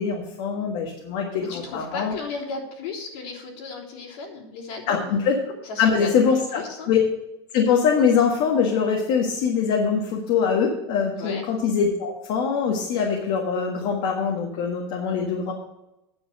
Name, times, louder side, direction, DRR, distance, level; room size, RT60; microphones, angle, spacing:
voice 1, 0.0-2.2 4.9-5.3 5.8-7.0 7.5-15.5, left 6 dB, 55° left, 0 dB, 1.6 m, -23 dB
voice 2, 1.5-5.2 5.6-6.9 11.1-11.4, left 4 dB, 70° left, -5 dB, 3.3 m, -35 dB
9.6 x 6.1 x 6.6 m, 0.91 s
supercardioid pair, 130°, 14 cm